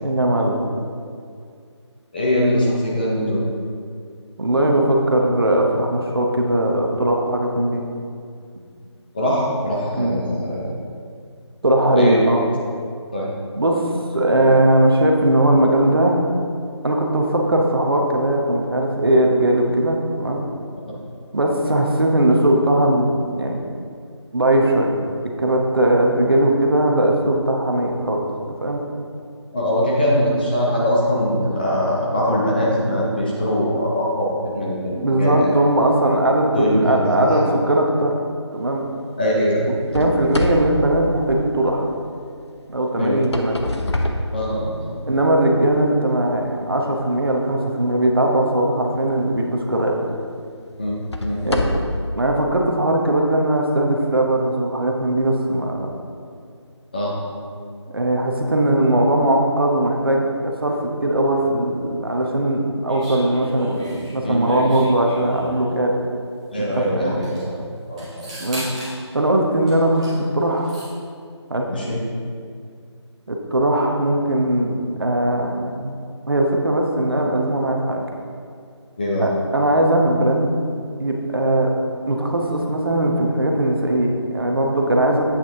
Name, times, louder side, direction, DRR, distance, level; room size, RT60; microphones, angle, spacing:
voice 1, 0.0-0.6 4.4-7.8 9.9-10.2 11.6-12.4 13.6-13.9 14.1-16.2 16.8-20.4 21.3-23.6 24.3-24.9 25.4-28.8 34.9-38.1 38.5-38.9 39.9-41.9 42.7-43.6 45.1-50.0 51.4-51.6 52.1-55.9 57.9-65.9 66.6-67.2 68.4-68.7 69.1-70.7 71.5-71.7 73.3-75.9 76.3-78.0 79.2-80.5 81.0-81.7 82.1-85.3, right 1 dB, 50° right, 1 dB, 0.9 m, -19 dB
voice 2, 2.1-3.4 9.1-10.7 12.0-12.2 13.1-13.3 29.5-35.5 36.5-37.4 39.2-40.1 43.0-43.2 44.3-44.9 50.8-51.4 56.9-57.2 64.2-64.4 66.5-67.6 67.9-68.3 71.7-72.0 79.0-79.3, equal, 20° left, -5 dB, 0.8 m, -22 dB
sound 1, 39.9-41.9 43.0-45.0 45.6-45.8 46.4-46.5 49.2-49.3 49.9-50.0 50.8-52.1, left 1 dB, 65° left, 0.8 m, -26 dB
sound 2, 62.9-65.7 66.7-66.8 67.1-67.4 68.0-69.0 69.7-70.2 70.4-70.9, equal, 10° right, 1.0 m, -34 dB
8.3 x 6.1 x 3.6 m, 2.3 s
figure-of-eight pair, 160°, 15 cm